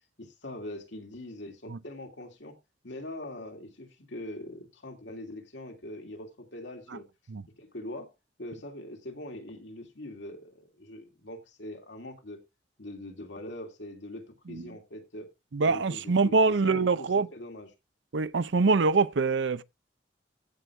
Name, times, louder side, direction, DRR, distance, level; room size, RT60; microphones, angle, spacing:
voice 1, 0.2-2.5 2.8-7.0 7.6-8.1 8.4-12.4 12.8-15.3 15.6-17.7, left 1 dB, 75° left, 2.6 m, -42 dB
voice 2, 15.5-17.3 18.1-19.6, right 4 dB, 75° right, 0.6 m, -24 dB
15.0 x 6.2 x 3.3 m
head